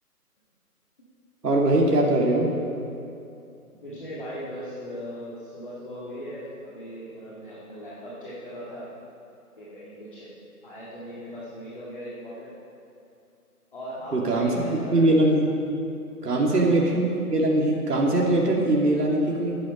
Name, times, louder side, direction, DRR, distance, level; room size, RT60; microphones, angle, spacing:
voice 1, 1.4-2.5 14.1-15.5 16.2-19.6, right 1 dB, 75° right, -2 dB, 2.5 m, -21 dB
voice 2, 3.8-8.9 9.6-10.3 10.6-12.6 13.7-15.1 16.4-16.6, equal, 35° left, -9 dB, 2.1 m, -38 dB
14.0 x 10.5 x 5.4 m, 2.7 s
hypercardioid pair, 175°, 47 cm